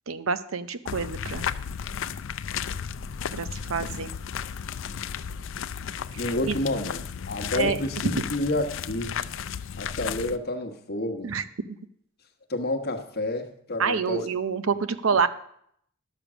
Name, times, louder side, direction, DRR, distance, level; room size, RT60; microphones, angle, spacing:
voice 1, 0.1-1.5 3.3-4.1 6.1-6.6 7.5-7.8 8.2-8.3 11.2-11.4 13.8-15.3, right 5 dB, 75° right, 13 dB, 0.7 m, -27 dB
sound 1, 0.9-10.4, left 7 dB, 65° left, 0.4 m, -34 dB
voice 2, 6.2-9.2 9.8-11.3 12.5-14.2, left 1 dB, 50° left, 6 dB, 1.2 m, -29 dB
11.5 x 6.8 x 6.1 m, 0.70 s
head